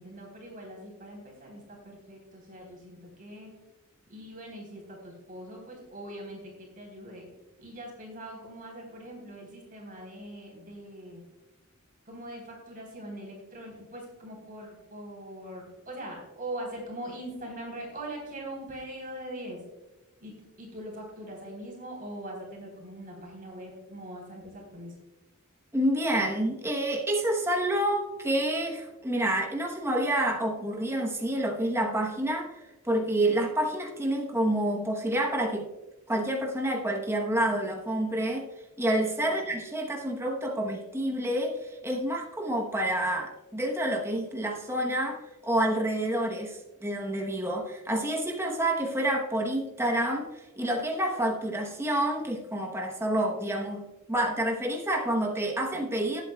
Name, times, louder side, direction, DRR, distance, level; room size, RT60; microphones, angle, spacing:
voice 1, 0.0-3.5 4.1-7.3 7.6-11.2 12.1-19.6 20.2-20.3 20.6-24.9 39.2-39.4, right 1 dB, 40° right, -1 dB, 3.5 m, -42 dB
voice 2, 25.7-32.5 32.8-35.7 36.1-38.4 38.8-41.6 41.8-50.3 50.6-56.2, right 1 dB, 10° right, 1 dB, 1.0 m, -28 dB
19.0 x 8.2 x 2.3 m, 1.0 s
head